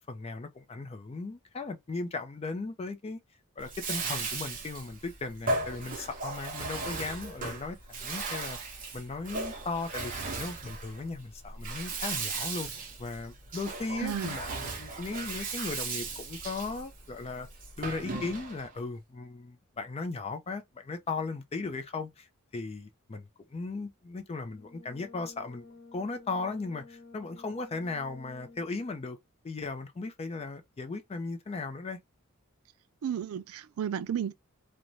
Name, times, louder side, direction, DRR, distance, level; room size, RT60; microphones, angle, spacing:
voice 1, 0.0-3.2 3.6-8.6 8.9-12.7 13.0-17.5 17.8-22.3 22.5-25.7 25.9-29.2 29.4-32.0, left 3 dB, 30° left, 0.4 m, -37 dB
Bathtub (filling or washing), 3.6-18.7, right 3 dB, 40° right, 0.8 m, -37 dB
voice 2, 14.0-14.4 33.0-34.3, right 8 dB, 75° right, 0.3 m, -33 dB
Brass instrument, 24.5-28.9, left 3 dB, 45° left, 0.9 m, -52 dB
2.5 x 2.1 x 3.0 m
head